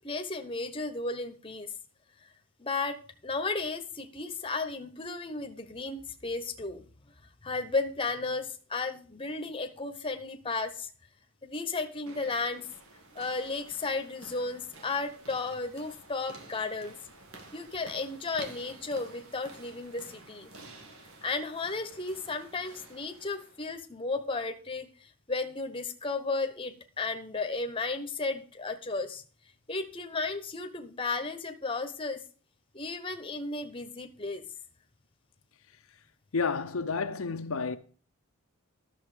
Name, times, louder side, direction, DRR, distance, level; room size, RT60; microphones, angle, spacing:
voice 1, 0.0-1.7 2.6-3.0 3.2-6.8 7.4-10.9 11.4-12.7 13.1-17.0 17.5-20.5 21.2-29.2 29.7-32.2 32.7-34.4, left 3 dB, 25° left, 1.0 m, -34 dB
sound 1, 11.9-23.8, right 2 dB, 75° right, 2.1 m, -51 dB
voice 2, 36.3-37.8, left 4 dB, 70° left, 0.7 m, -30 dB
11.5 x 6.9 x 5.0 m
head